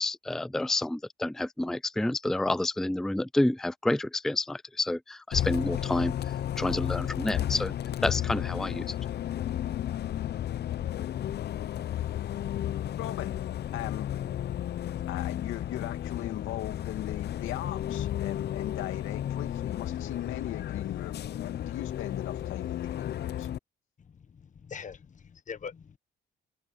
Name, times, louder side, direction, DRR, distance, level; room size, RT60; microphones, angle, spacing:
voice 1, 0.0-6.2 6.6-7.7 8.0-8.9, left 2 dB, ahead, 0.4 m, -29 dB
Bus, 5.3-23.6, left 11 dB, 55° left, 0.6 m, -33 dB
voice 2, 13.0-13.4 13.7-14.1 15.1-23.5, left 13 dB, 90° left, 2.5 m, -38 dB
voice 3, 24.3-26.0, left 6 dB, 40° left, 1.2 m, -42 dB
open air
cardioid pair, 90°, 20 cm